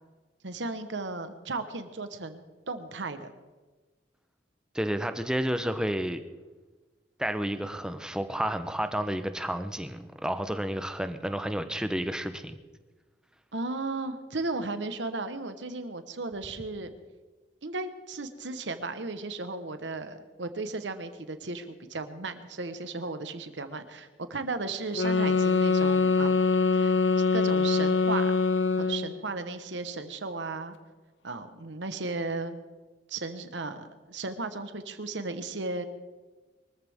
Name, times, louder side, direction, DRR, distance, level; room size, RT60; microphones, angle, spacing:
voice 1, 0.4-3.3 13.5-16.9 17.6-26.4 26.7-27.0 27.3-28.4 28.8-30.8 31.2-32.6 33.1-35.9, right 3 dB, 85° right, 9 dB, 1.2 m, -35 dB
voice 2, 4.7-6.3 7.2-12.6, equal, 5° right, 9 dB, 0.8 m, -31 dB
sound 1, 24.9-29.2, left 4 dB, 80° left, 1.1 m, -24 dB
23.0 x 14.0 x 3.6 m, 1.3 s
head